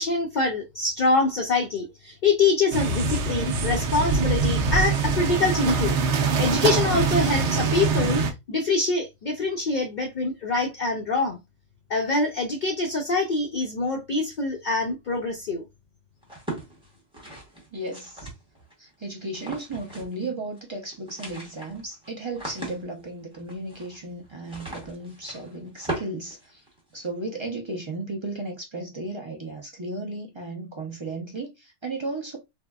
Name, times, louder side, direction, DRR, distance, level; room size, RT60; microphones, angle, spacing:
voice 1, 0.0-6.0 6.4-8.2 8.5-11.4 11.9-15.6, left 3 dB, 65° left, 0.4 m, -24 dB
sound 1, 2.7-8.3, right 4 dB, 70° right, 0.9 m, -24 dB
sound 2, 16.2-18.7 19.3-20.3 20.5-20.6 20.9-27.1, right 2 dB, 5° right, 0.8 m, -39 dB
voice 2, 17.7-18.3 18.8-26.6 26.9-32.4, right 2 dB, 40° right, 0.4 m, -35 dB
3.5 x 2.1 x 2.2 m
omnidirectional pair, 1.3 m